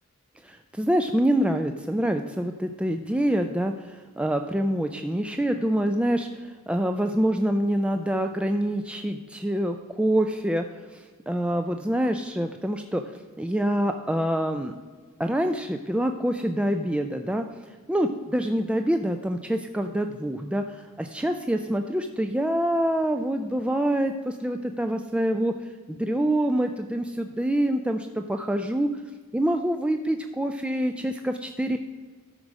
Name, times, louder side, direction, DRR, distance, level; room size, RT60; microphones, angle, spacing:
voice 1, 0.4-13.0 13.4-14.8 15.2-17.5 17.9-29.0 29.3-31.8, right 1 dB, 5° right, 6 dB, 0.4 m, -26 dB
13.0 x 4.8 x 6.2 m, 1.5 s
head